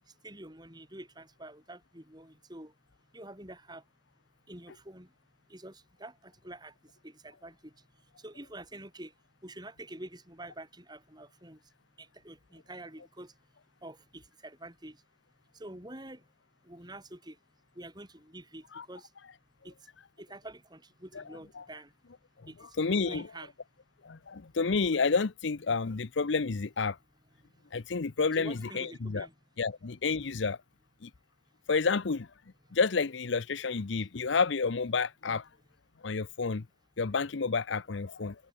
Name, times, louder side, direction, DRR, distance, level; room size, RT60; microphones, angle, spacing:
voice 1, 0.2-2.7 3.1-3.8 4.5-5.1 5.5-6.7 7.0-7.7 8.2-9.1 9.4-11.6 12.0-13.3 13.8-15.0 15.5-16.2 16.7-17.4 17.8-19.1 19.6-19.7 20.2-21.9 22.5-22.6 23.0-23.5 28.4-29.3, right 1 dB, 20° right, 7.5 m, -47 dB
voice 2, 22.8-23.2 24.0-27.0 27.7-29.3 29.6-30.6 31.0-31.1 31.7-32.3 32.7-35.4 36.0-36.6 37.0-38.4, left 4 dB, 75° left, 0.7 m, -30 dB
head